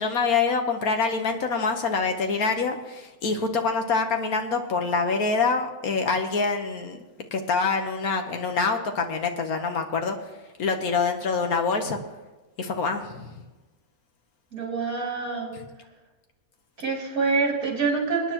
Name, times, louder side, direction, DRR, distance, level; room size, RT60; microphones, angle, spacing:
voice 1, 0.0-7.0 7.3-10.2 10.6-12.0 12.6-13.3, left 4 dB, 80° left, 4 dB, 1.6 m, -25 dB
voice 2, 14.5-15.6 16.8-18.3, right 4 dB, 75° right, -2 dB, 4.1 m, -26 dB
25.5 x 10.0 x 3.0 m, 1.2 s
omnidirectional pair, 1.6 m